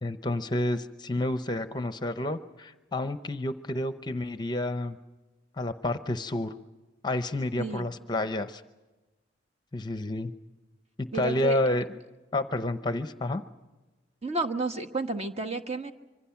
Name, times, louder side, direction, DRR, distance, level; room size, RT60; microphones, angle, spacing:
voice 1, 0.0-5.0 5.6-6.5 7.0-8.6 9.7-10.3 11.0-12.0 12.3-13.4, left 1 dB, 25° left, 10 dB, 0.8 m, -30 dB
voice 2, 11.1-11.6 14.2-15.9, right 3 dB, 35° right, 5 dB, 1.3 m, -31 dB
26.0 x 24.5 x 5.9 m, 1.2 s
head